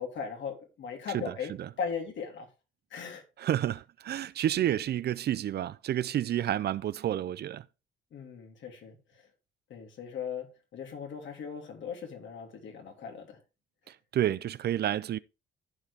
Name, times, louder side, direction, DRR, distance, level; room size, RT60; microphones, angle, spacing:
voice 1, 0.0-1.5 1.8-2.5 2.9-3.2 8.1-9.3 9.7-13.4, left 6 dB, 70° left, 2.9 m, -38 dB
voice 2, 1.1-1.7 3.4-7.7 13.9-15.2, right 11 dB, 55° right, 0.5 m, -30 dB
14.5 x 5.0 x 3.4 m
cardioid pair, 90°, 20 cm